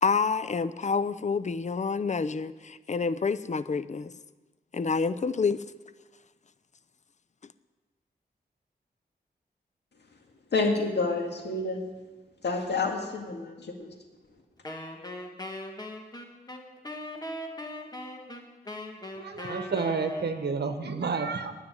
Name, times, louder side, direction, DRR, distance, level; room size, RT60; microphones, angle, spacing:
voice 1, 0.0-4.1 4.7-5.6, left 5 dB, 45° left, 14 dB, 0.5 m, -28 dB
voice 2, 10.5-11.8 12.4-13.9, left 3 dB, 80° left, 2 dB, 2.0 m, -28 dB
Wind instrument woodwind instrument, 14.6-20.7, left 1 dB, 25° left, 1.6 m, -40 dB
voice 3, 19.2-21.5, right 4 dB, 75° right, 7 dB, 1.2 m, -30 dB
9.7 x 9.6 x 9.7 m, 1.3 s
wide cardioid pair, 90°, 17 cm